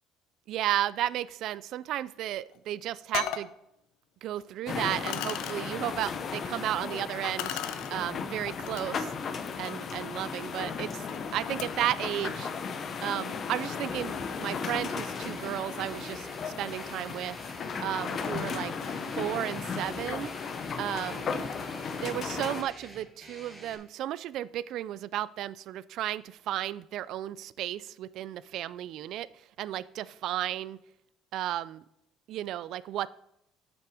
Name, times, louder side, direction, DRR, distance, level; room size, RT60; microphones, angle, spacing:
voice 1, 0.5-3.5 4.2-7.6 7.9-9.3 9.6-12.5 13.0-17.4 17.8-20.3 20.8-21.4 22.0-29.3 29.6-30.8 31.3-31.8 32.3-33.1, right 12 dB, 55° right, 18 dB, 0.3 m, -33 dB
sound 1, 2.5-2.6 3.1-3.5 4.4-4.5 5.1-5.6 7.4-7.9 8.7-8.8 9.3-11.9, left 11 dB, 90° left, 0.6 m, -37 dB
sound 2, 4.7-22.6, left 5 dB, 35° left, 0.6 m, -35 dB
sound 3, 15.0-23.7, right 1 dB, 5° right, 1.3 m, -49 dB
7.5 x 6.1 x 4.9 m, 0.79 s
cardioid pair, 170°, 0 cm